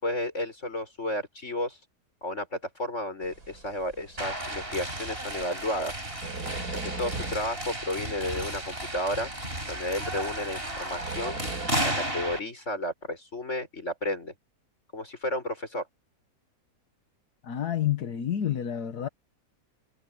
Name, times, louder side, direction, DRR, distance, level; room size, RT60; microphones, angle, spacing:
voice 1, 0.0-1.8 2.2-6.0 6.7-9.3 9.7-11.4 11.8-14.3 14.9-15.9, left 1 dB, 50° left, 7.0 m, -32 dB
sound 1, 3.2-11.7, right 3 dB, 90° right, 4.8 m, -43 dB
sound 2, 4.2-12.4, right 1 dB, 35° right, 7.2 m, -33 dB
voice 2, 17.4-19.1, left 10 dB, 85° left, 1.7 m, -29 dB
omnidirectional pair, 1.6 m